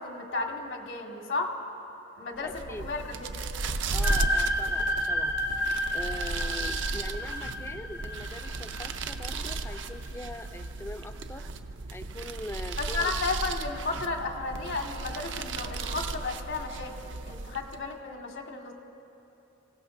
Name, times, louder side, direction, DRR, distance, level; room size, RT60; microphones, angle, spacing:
voice 1, 0.0-1.5 2.2-3.3 12.8-18.7, left 3 dB, 70° left, 1 dB, 1.8 m, -33 dB
voice 2, 2.4-2.9 3.9-5.4 5.9-11.4 11.9-13.1, left 1 dB, 15° left, 8 dB, 0.5 m, -42 dB
sound 1, 2.4-17.9, right 3 dB, 65° right, 0.6 m, -35 dB
sound 2, 4.0-10.2, equal, 55° left, 0.6 m, -31 dB
26.0 x 17.0 x 2.7 m, 3.0 s
head